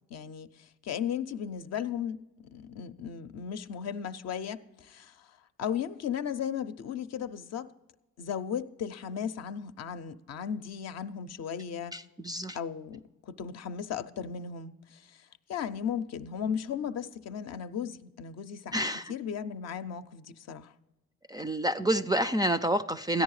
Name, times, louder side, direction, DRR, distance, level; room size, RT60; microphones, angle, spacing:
voice 1, 0.1-5.3 5.6-7.7 8.2-11.9 12.5-18.8 19.1-20.7, left 8 dB, 60° left, 0.6 m, -36 dB
voice 2, 11.9-12.6 18.7-19.1 21.3-23.2, right 1 dB, 15° right, 0.3 m, -28 dB
14.0 x 10.0 x 4.8 m
cardioid pair, 90°, 30 cm